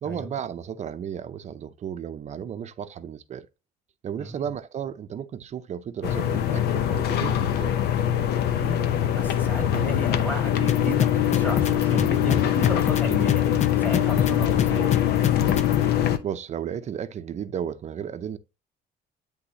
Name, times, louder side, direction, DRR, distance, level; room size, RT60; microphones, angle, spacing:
voice 1, 0.0-3.5 4.0-7.8 16.2-18.4, right 8 dB, 45° right, 0.6 m, -34 dB
sound 1, 6.0-16.2, left 10 dB, 75° left, 0.7 m, -23 dB
voice 2, 8.5-8.8 9.1-13.4 13.8-15.0, equal, 10° left, 2.6 m, -32 dB
sound 2, 10.7-15.8, left 9 dB, 40° left, 0.5 m, -25 dB
9.8 x 3.5 x 2.9 m
cardioid pair, 110°, 17 cm